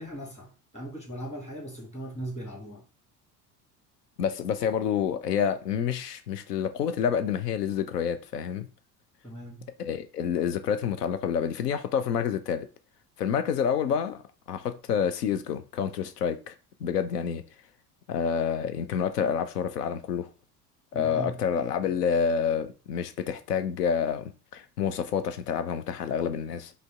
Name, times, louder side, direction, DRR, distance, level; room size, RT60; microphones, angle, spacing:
voice 1, 0.0-2.8 9.2-9.7 20.9-21.4, right 1 dB, 15° left, 1.7 m, -39 dB
voice 2, 4.2-8.7 9.8-12.7 13.2-14.2 14.5-16.5 16.8-17.4 18.1-20.3 20.9-26.7, left 7 dB, 75° left, 0.5 m, -28 dB
5.0 x 2.1 x 3.6 m
figure-of-eight pair, 65°, 47 cm